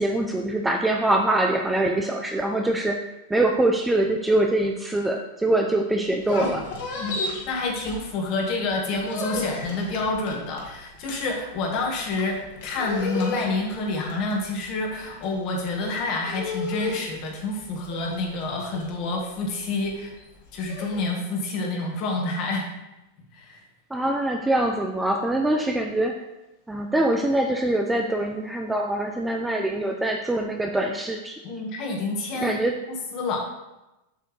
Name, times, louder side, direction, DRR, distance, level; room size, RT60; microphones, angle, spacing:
voice 1, 0.0-3.0 3.3-6.6 23.9-26.2 26.7-31.4 32.4-32.8, right 1 dB, 5° right, 2 dB, 0.4 m, -24 dB
sound 1, 6.1-8.4 8.7-21.0, left 3 dB, 55° left, 1.8 m, -34 dB
voice 2, 6.9-20.1 20.5-22.7 23.3-23.6 31.4-32.6 32.9-33.5, left 2 dB, 35° left, 0 dB, 1.5 m, -28 dB
7.6 x 6.9 x 3.2 m, 0.98 s
supercardioid pair, 170°, 0 cm